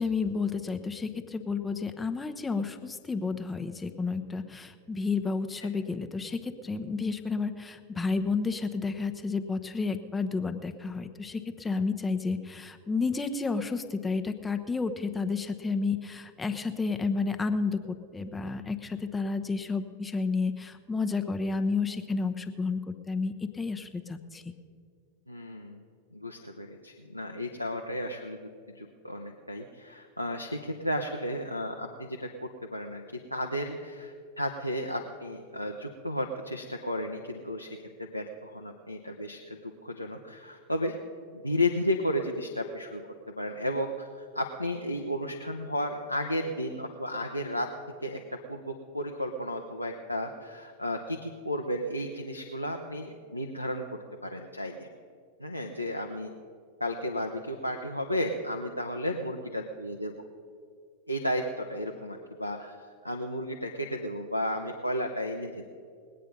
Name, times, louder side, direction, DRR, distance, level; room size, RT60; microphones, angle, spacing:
voice 1, 0.0-24.5, left 4 dB, 10° left, 8 dB, 0.9 m, -31 dB
voice 2, 25.3-25.8 26.1-28.4 28.7-33.0 33.3-41.0 41.3-43.0 43.4-47.7 48.0-54.9 55.4-56.3 56.8-60.1 61.1-62.8 63.0-65.6, equal, 90° left, 2 dB, 0.8 m, -33 dB
20.5 x 8.8 x 5.3 m, 2.2 s
figure-of-eight pair, 90°, 0 cm